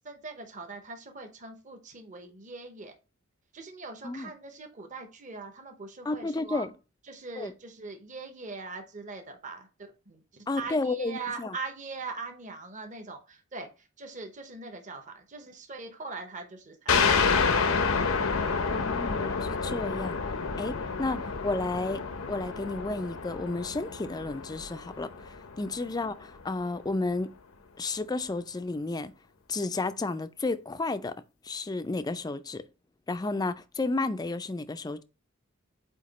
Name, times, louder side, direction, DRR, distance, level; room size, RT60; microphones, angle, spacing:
voice 1, 0.0-2.9 3.5-6.6 7.1-17.9 25.8-25.9, right 4 dB, 40° right, 0.9 m, -42 dB
voice 2, 6.1-6.7 7.4-7.5 10.5-11.5 18.7-20.2 20.6-27.3 27.8-29.1 29.5-31.2 31.4-32.6 33.1-35.0, left 3 dB, 20° left, 0.4 m, -32 dB
sound 1, 16.9-26.1, left 5 dB, 85° left, 0.8 m, -29 dB
8.4 x 2.8 x 4.1 m
head